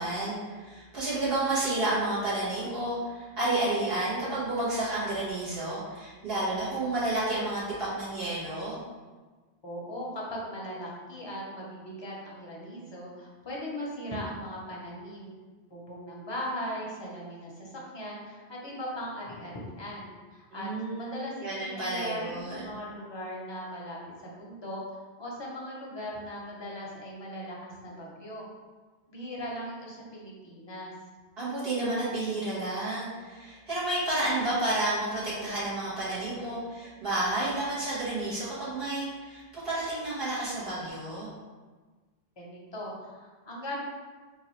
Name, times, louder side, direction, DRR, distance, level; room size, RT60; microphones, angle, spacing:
voice 1, 0.0-8.8 20.5-21.1 21.4-22.7 31.4-41.3, right 2 dB, 60° right, -11 dB, 1.6 m, -31 dB
voice 2, 9.6-15.3 15.7-28.5 29.1-30.9 42.4-43.8, equal, 30° left, -4 dB, 0.6 m, -39 dB
3.9 x 2.5 x 3.0 m, 1.4 s
omnidirectional pair, 1.1 m